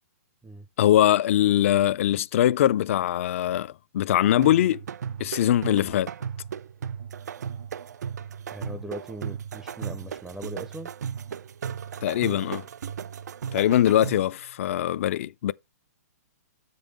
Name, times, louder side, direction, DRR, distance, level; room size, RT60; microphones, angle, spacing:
voice 1, 0.8-4.8 5.2-6.1 12.0-12.6 13.5-15.5, left 12 dB, 55° left, 0.4 m, -22 dB
sound 1, 4.4-14.3, right 7 dB, 80° right, 0.4 m, -36 dB
voice 2, 8.5-10.9, right 1 dB, 5° right, 0.5 m, -39 dB
7.2 x 5.4 x 4.0 m
hypercardioid pair, 150°, 9 cm